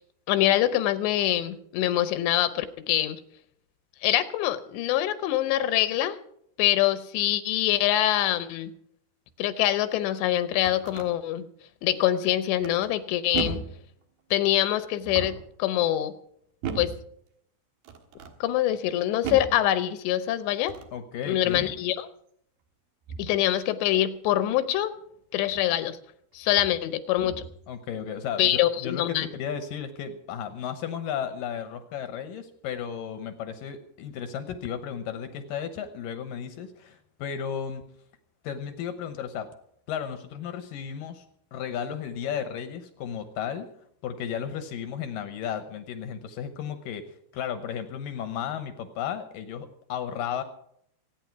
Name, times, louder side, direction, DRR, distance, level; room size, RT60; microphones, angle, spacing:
voice 1, 0.3-3.2 4.0-6.2 6.6-8.7 9.4-11.5 11.8-13.6 14.3-16.1 16.8-16.9 18.4-20.7 21.3-22.1 23.2-24.9 25.3-26.0 26.3-27.4 28.4-29.3, left 13 dB, 85° left, 12 dB, 3.1 m, -24 dB
sound 1, 10.3-11.1 12.6-13.0 13.3-13.8 15.0-15.5 16.6-17.1 17.8-18.4 19.2-19.6 20.6-21.0 21.5-21.8 23.1-23.4 25.5-25.6 26.5-26.8 27.2-27.6, right 6 dB, 70° right, 3.3 m, -36 dB
voice 2, 20.9-21.8 27.7-37.8 38.4-39.5 39.9-41.3 41.5-43.7 44.0-50.4, left 8 dB, 70° left, 9 dB, 2.2 m, -34 dB
25.5 x 9.7 x 4.7 m, 0.71 s
omnidirectional pair, 4.9 m